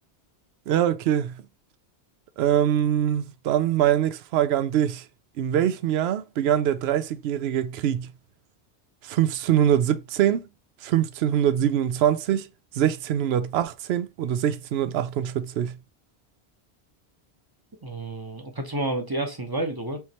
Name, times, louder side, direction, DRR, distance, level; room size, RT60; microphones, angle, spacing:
voice 1, 0.7-1.4 2.4-5.0 5.4-8.1 9.0-10.4 10.8-12.5 12.7-15.8, right 10 dB, 75° right, 0.8 m, -23 dB
voice 2, 17.8-20.0, right 2 dB, 25° right, 0.8 m, -30 dB
4.7 x 3.1 x 2.8 m
omnidirectional pair, 1.1 m